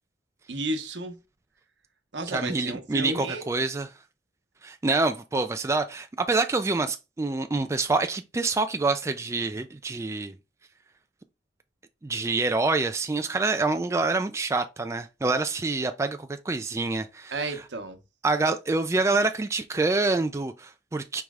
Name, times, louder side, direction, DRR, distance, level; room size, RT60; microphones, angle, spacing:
voice 1, 0.5-1.2 2.1-3.5 17.3-18.0, right 2 dB, 80° right, 0.9 m, -32 dB
voice 2, 2.3-3.9 4.6-10.3 12.0-17.6 18.2-21.2, right 3 dB, 15° right, 0.3 m, -26 dB
4.7 x 3.1 x 3.5 m
head